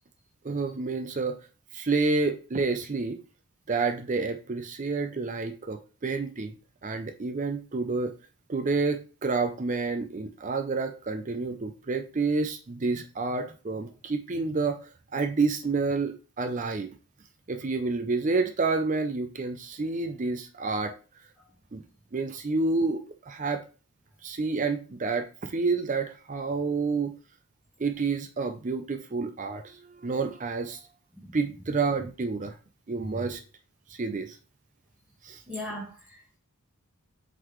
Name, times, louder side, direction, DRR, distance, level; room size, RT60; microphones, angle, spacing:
voice 1, 0.4-1.4 1.7-3.2 3.7-6.5 6.8-8.1 8.5-14.8 15.1-16.9 17.5-20.9 21.7-21.8 22.1-23.6 24.2-27.1 27.8-30.8 31.3-32.6 32.9-33.4 33.9-34.4 35.2-35.4, right 4 dB, 35° right, 0.5 m, -29 dB
voice 2, 35.5-36.4, left 1 dB, 5° right, 1.6 m, -38 dB
7.7 x 3.9 x 3.1 m
head